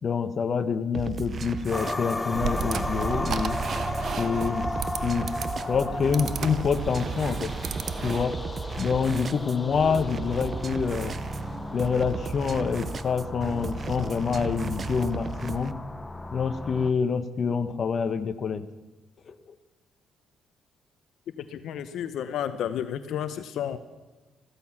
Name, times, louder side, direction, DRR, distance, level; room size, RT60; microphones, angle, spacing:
voice 1, 0.0-3.6 4.2-4.7 5.0-5.3 5.7-7.5 8.0-8.4 8.8-11.2 11.7-15.7 16.3-18.7 19.3-19.4, left 6 dB, 50° left, 10 dB, 1.1 m, -26 dB
sound 1, 0.9-15.7, right 5 dB, 45° right, 0.7 m, -36 dB
sound 2, 1.7-16.9, left 2 dB, 20° left, 1.0 m, -35 dB
sound 3, 2.3-8.3, right 6 dB, 60° right, 1.1 m, -34 dB
voice 2, 21.5-23.8, left 9 dB, 75° left, 11 dB, 0.9 m, -31 dB
15.0 x 15.0 x 5.9 m, 1.2 s
cardioid pair, 90°, 0 cm